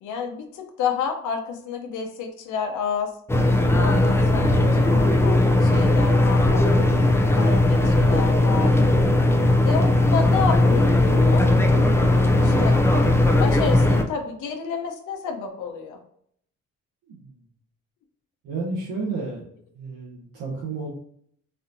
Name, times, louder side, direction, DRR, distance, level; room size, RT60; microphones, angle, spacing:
voice 1, 0.0-3.1 3.7-6.6 7.1-8.8 9.6-11.5 12.4-12.8 13.3-16.0, left 6 dB, 80° left, 4 dB, 0.7 m, -30 dB
sound 1, 3.3-14.0, left 2 dB, 10° left, 0.4 m, -18 dB
voice 2, 17.1-17.4 18.4-19.4 19.7-20.9, right 3 dB, 90° right, -6 dB, 1.1 m, -31 dB
4.1 x 2.6 x 2.6 m, 0.66 s
cardioid pair, 90°, 30 cm